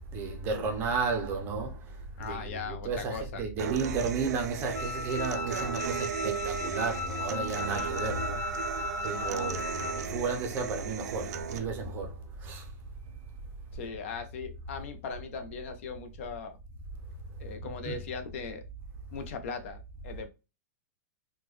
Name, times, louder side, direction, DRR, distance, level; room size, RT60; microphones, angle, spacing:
voice 1, 0.1-8.7 9.0-9.6 10.0-12.7 17.8-18.0, right 4 dB, 20° right, 0.5 m, -33 dB
voice 2, 2.2-3.4 7.7-7.9 9.1-9.6 13.7-16.6 17.4-18.6 19.1-20.3, left 5 dB, 50° left, 0.6 m, -39 dB
Human voice / Acoustic guitar, 3.6-11.6, right 9 dB, 85° right, 0.5 m, -36 dB
Wind instrument woodwind instrument, 4.7-10.1, left 3 dB, 75° left, 0.9 m, -36 dB
3.5 x 2.2 x 3.0 m
supercardioid pair, 170°, 9 cm